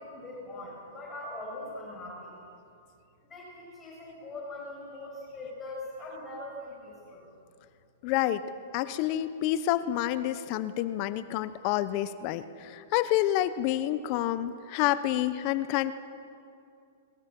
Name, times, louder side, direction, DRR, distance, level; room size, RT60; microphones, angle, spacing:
voice 1, 0.0-2.3 3.2-7.3, left 2 dB, 15° left, -5 dB, 7.3 m, -41 dB
voice 2, 8.0-8.4 8.7-15.9, left 13 dB, 45° left, 13 dB, 0.9 m, -28 dB
22.0 x 22.0 x 7.6 m, 2.5 s
hypercardioid pair, 125°, 0 cm